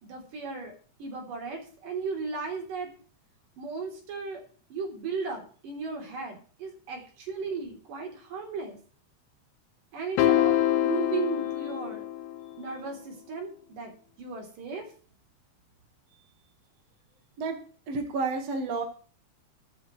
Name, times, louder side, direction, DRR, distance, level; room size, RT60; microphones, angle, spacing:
voice 1, 0.0-0.7 1.0-2.9 3.6-4.4 4.7-8.8 9.9-12.0 12.5-13.9 14.2-14.9, right 4 dB, 85° right, 1 dB, 4.9 m, -36 dB
sound 1, 10.2-12.6, left 12 dB, 75° left, 2.1 m, -25 dB
voice 2, 17.9-18.8, right 3 dB, 55° right, 4 dB, 2.5 m, -30 dB
23.0 x 9.4 x 3.1 m, 0.42 s
omnidirectional pair, 3.7 m